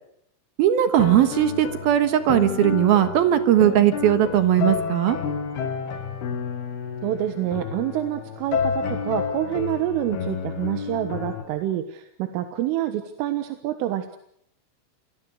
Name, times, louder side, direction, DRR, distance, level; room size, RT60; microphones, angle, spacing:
voice 1, 0.6-5.2, right 11 dB, 65° right, 10 dB, 2.7 m, -19 dB
sound 1, 1.0-11.4, left 6 dB, 60° left, 4.1 m, -30 dB
voice 2, 7.0-14.2, right 12 dB, 85° right, 8 dB, 4.0 m, -27 dB
27.5 x 21.5 x 6.4 m, 0.72 s
omnidirectional pair, 5.6 m